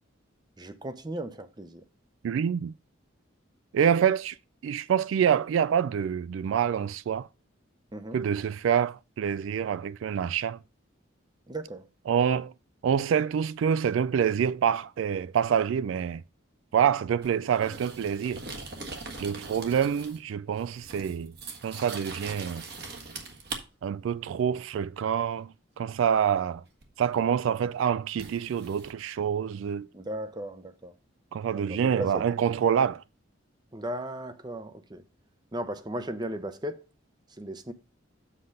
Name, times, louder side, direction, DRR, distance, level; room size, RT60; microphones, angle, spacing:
voice 1, 0.6-1.8 7.9-8.2 11.5-11.9 29.9-30.9 31.7-32.3 33.7-35.0 35.5-36.8 37.4-37.7, right 1 dB, 20° right, 0.7 m, -36 dB
voice 2, 2.2-2.7 3.7-4.4 4.6-7.3 8.1-10.6 12.1-12.5 12.8-16.2 16.7-18.4 19.2-21.3 21.6-22.6 23.8-25.5 25.8-26.6 27.0-29.9 31.3-33.0, right 8 dB, 80° right, 0.3 m, -26 dB
sound 1, 17.2-20.3 20.6-23.6 26.8-26.9 28.2-28.9, right 3 dB, 55° right, 1.5 m, -41 dB
7.6 x 3.9 x 6.5 m
head